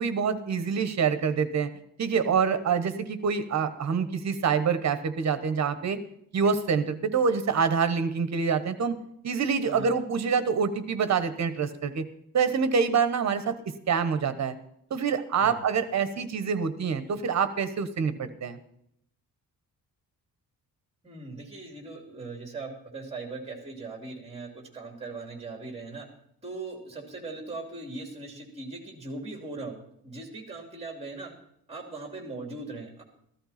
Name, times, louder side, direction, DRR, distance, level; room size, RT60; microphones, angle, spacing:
voice 1, 0.0-1.7 2.0-6.0 6.3-9.0 9.2-12.1 12.3-14.5 14.9-18.6, right 6 dB, 50° right, 11 dB, 1.1 m, -26 dB
voice 2, 21.0-26.1 26.4-31.3 31.7-33.0, right 3 dB, 15° right, 2 dB, 2.9 m, -39 dB
14.5 x 13.5 x 4.3 m, 0.72 s
wide cardioid pair, 170°, 35 cm